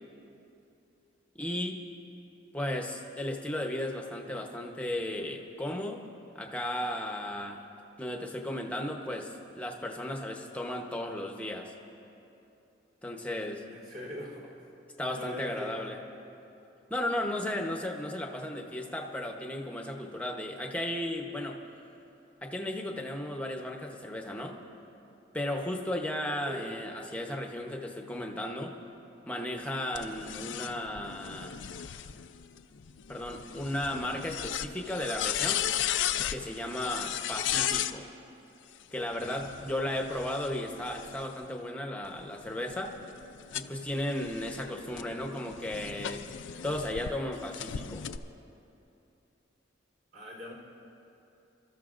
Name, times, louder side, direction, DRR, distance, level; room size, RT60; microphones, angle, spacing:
voice 1, 1.3-1.8 2.5-6.0 6.3-7.6 8.0-11.7 13.0-13.6 15.0-16.0 16.9-21.6 22.4-24.6 25.3-28.8 29.3-31.6 33.1-35.6 36.3-38.1 38.9-42.9 43.5-46.2 46.6-48.1, left 1 dB, 5° left, 2 dB, 0.9 m, -35 dB
voice 2, 13.7-14.6 15.1-16.0 26.4-26.8 50.1-50.5, left 1 dB, 50° right, -3 dB, 3.6 m, -41 dB
sound 1, 30.0-38.0 39.1-41.5 42.0-47.1 47.5-48.2, left 10 dB, 70° left, 0.4 m, -36 dB
29.0 x 13.5 x 2.5 m, 2.9 s
head